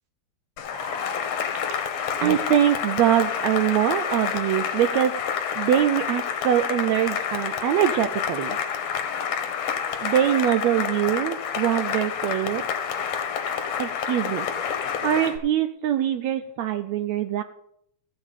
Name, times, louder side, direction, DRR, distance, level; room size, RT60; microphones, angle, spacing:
Cheering / Applause, 0.6-15.4, left 7 dB, 70° left, 2.0 m, -28 dB
voice 1, 2.2-5.1 5.6-8.6 10.0-12.6 13.8-14.5 15.0-17.4, right 11 dB, 80° right, 9 dB, 1.7 m, -23 dB
14.5 x 7.3 x 5.0 m, 0.72 s
omnidirectional pair, 3.5 m